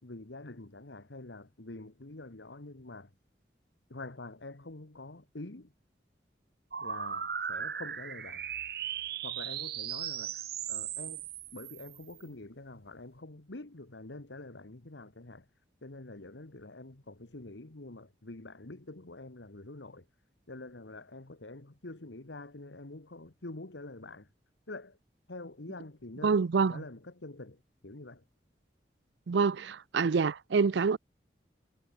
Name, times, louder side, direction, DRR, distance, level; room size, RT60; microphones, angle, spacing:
voice 1, 0.0-3.1 3.9-5.7 6.8-8.4 9.2-15.5 15.8-20.1 20.5-24.3 24.7-25.0 25.3-28.2, left 2 dB, 85° left, 1.7 m, -46 dB
sound 1, 6.7-12.2, right 8 dB, 60° right, 1.7 m, -37 dB
voice 2, 26.2-26.7 29.3-31.0, right 5 dB, 80° right, 0.5 m, -26 dB
head